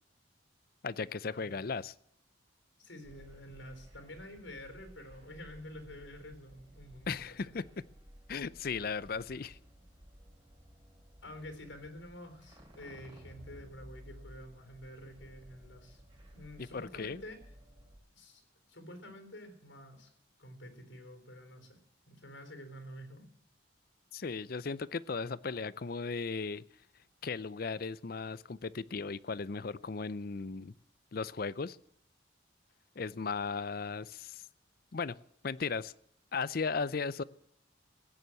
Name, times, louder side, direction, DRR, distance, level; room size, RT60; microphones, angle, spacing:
voice 1, 0.8-1.9 7.1-7.6 8.3-9.6 16.6-17.2 24.1-26.6 27.2-30.7 31.1-31.8 33.0-34.5 34.9-35.2 35.4-35.9 36.3-37.2, left 4 dB, 50° left, 0.5 m, -36 dB
voice 2, 2.8-7.4 11.2-16.0 16.3-17.4 18.1-18.4 18.7-20.1 20.4-21.8 22.0-23.3, left 1 dB, 75° left, 3.8 m, -49 dB
sound 1, 3.0-18.0, equal, 25° right, 3.0 m, -56 dB
17.0 x 9.8 x 7.7 m
head